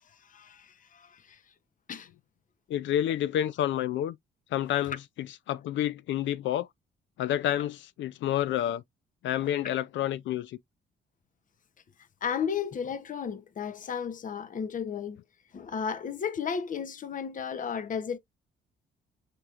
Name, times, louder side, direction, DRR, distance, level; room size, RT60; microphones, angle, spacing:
voice 1, 0.3-1.2 1.9-2.1 9.4-9.5 12.2-15.2 15.5-18.2, left 7 dB, 40° left, 0.8 m, -34 dB
voice 2, 2.7-4.2 4.5-6.7 7.2-8.8 9.2-10.6, left 11 dB, 70° left, 0.4 m, -29 dB
6.5 x 3.0 x 2.4 m
cardioid pair, 90°, 20 cm